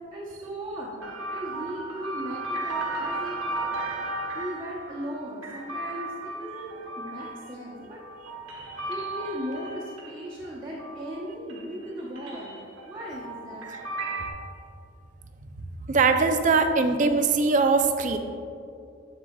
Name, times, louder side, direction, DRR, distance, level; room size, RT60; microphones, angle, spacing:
voice 1, 0.1-0.9 1.3-3.4 4.3-8.0 8.9-12.6 12.9-13.7, equal, 20° right, -7 dB, 0.8 m, -37 dB
sound 1, 1.0-11.2 11.5-14.3, right 2 dB, 90° right, 1.0 m, -35 dB
voice 2, 15.9-18.2, right 4 dB, 40° right, 6 dB, 0.4 m, -21 dB
8.1 x 6.6 x 2.3 m, 2.5 s
head